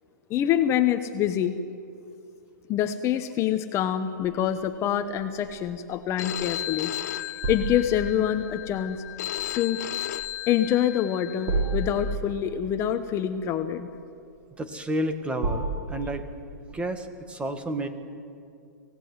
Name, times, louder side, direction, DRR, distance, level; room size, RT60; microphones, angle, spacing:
voice 1, 0.3-1.6 2.7-6.9 7.5-9.0 9.5-9.8 10.5-13.9, left 10 dB, 25° left, 9 dB, 1.0 m, -26 dB
sound 1, 4.2-16.9, right 2 dB, 40° right, 4.5 m, -35 dB
Telephone, 6.2-12.2, left 13 dB, 60° left, 0.8 m, -35 dB
voice 2, 14.6-16.2 16.7-17.9, right 1 dB, 10° right, 8 dB, 1.7 m, -31 dB
24.0 x 17.0 x 9.6 m, 2.5 s
hypercardioid pair, 135°, 10 cm